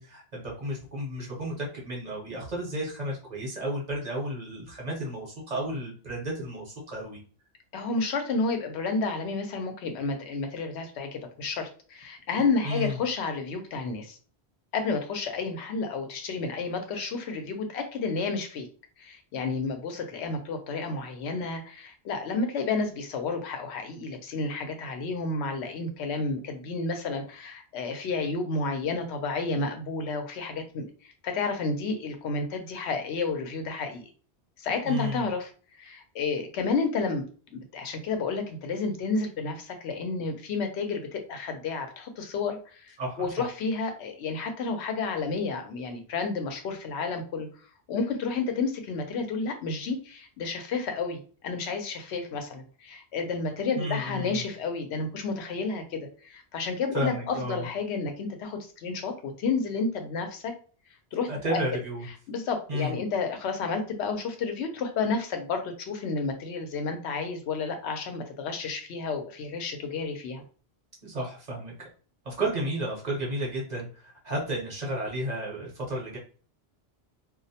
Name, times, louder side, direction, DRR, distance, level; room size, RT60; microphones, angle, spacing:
voice 1, 0.0-7.2 12.4-13.0 34.8-35.2 43.0-43.4 53.7-54.4 56.9-57.7 61.3-62.0 62.7-63.0 71.0-71.7 72.2-76.2, right 1 dB, 45° right, -3 dB, 0.8 m, -32 dB
voice 2, 7.7-14.2 14.7-18.7 19.0-34.0 34.6-35.5 35.8-37.2 37.5-47.5 47.9-60.5 61.1-61.6 62.3-70.4, left 4 dB, 85° left, 5 dB, 0.8 m, -31 dB
2.3 x 2.0 x 2.7 m, 0.40 s
omnidirectional pair, 1.1 m